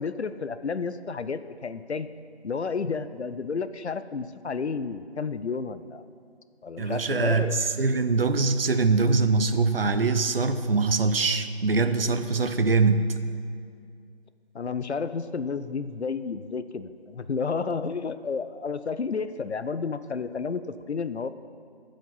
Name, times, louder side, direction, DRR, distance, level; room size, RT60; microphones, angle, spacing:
voice 1, 0.0-2.1 2.4-6.0 6.6-7.5 14.5-21.3, left 5 dB, 80° left, 12 dB, 0.6 m, -31 dB
voice 2, 6.8-13.1, right 4 dB, 60° right, 10 dB, 0.6 m, -23 dB
13.5 x 5.1 x 5.5 m, 2.2 s
figure-of-eight pair, 170°, 33 cm